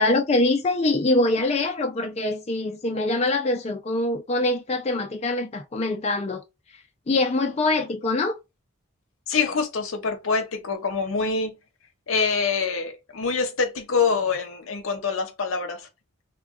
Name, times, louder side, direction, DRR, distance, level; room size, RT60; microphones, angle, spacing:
voice 1, 0.0-6.4 7.1-8.4, left 2 dB, 30° left, 0.4 m, -24 dB
voice 2, 9.3-11.6 12.1-15.9, left 5 dB, 70° left, 0.7 m, -25 dB
2.2 x 2.2 x 3.5 m
head